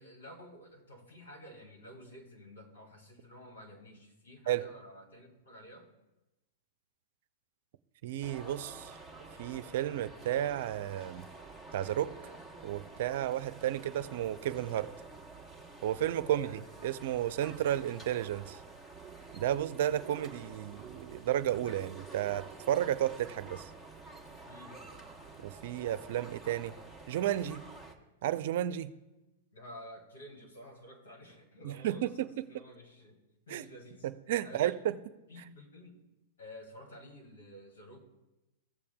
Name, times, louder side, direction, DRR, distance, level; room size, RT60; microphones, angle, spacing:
voice 1, 0.0-5.9 16.2-16.6 24.4-24.9 29.5-33.2 33.5-34.1 34.4-34.9 35.3-36.0 36.4-38.0, left 1 dB, 85° left, 2 dB, 2.4 m, -51 dB
voice 2, 8.0-9.0 9.4-11.3 11.7-12.1 12.6-14.9 15.8-16.5 16.8-18.6 19.3-23.7 25.4-26.7 27.1-27.6 28.2-28.9 31.6-32.3 33.5-33.6 34.0-35.0, right 12 dB, 65° right, 13 dB, 0.5 m, -32 dB
sound 1, 8.2-27.9, right 3 dB, 10° left, 1.2 m, -49 dB
16.0 x 7.1 x 2.3 m, 0.99 s
hypercardioid pair, 115°, 0 cm